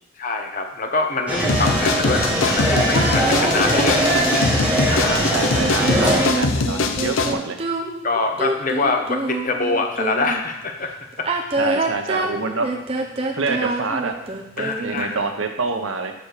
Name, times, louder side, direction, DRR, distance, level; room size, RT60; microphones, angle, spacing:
voice 1, 0.2-4.0 4.9-5.2 8.0-11.3 14.6-15.2, left 3 dB, 40° left, 4 dB, 0.8 m, -24 dB
sound 1, 1.3-6.3, right 1 dB, 5° right, 1.2 m, -21 dB
sound 2, 1.5-7.3, left 4 dB, 85° left, 0.6 m, -23 dB
sound 3, 2.9-10.4 11.1-15.2, right 2 dB, 30° right, 0.8 m, -26 dB
voice 2, 5.1-7.6 11.6-12.7 13.4-14.1 14.6-16.1, right 4 dB, 85° right, 5 dB, 0.9 m, -26 dB
5.9 x 5.0 x 6.7 m, 0.92 s
head